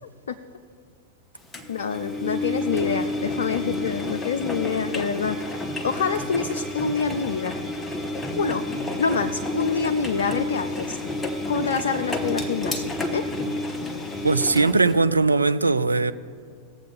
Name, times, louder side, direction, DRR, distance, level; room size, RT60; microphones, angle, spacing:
voice 1, 0.0-0.4 1.7-7.6 8.3-8.6 9.0-11.0 11.5-13.3, left 6 dB, 65° left, 0.4 m, -27 dB
Engine, 1.5-15.0, left 1 dB, 15° left, 1.0 m, -30 dB
voice 2, 14.2-16.1, right 3 dB, 80° right, 0.4 m, -20 dB
18.5 x 7.6 x 3.6 m
figure-of-eight pair, 90°, 0 cm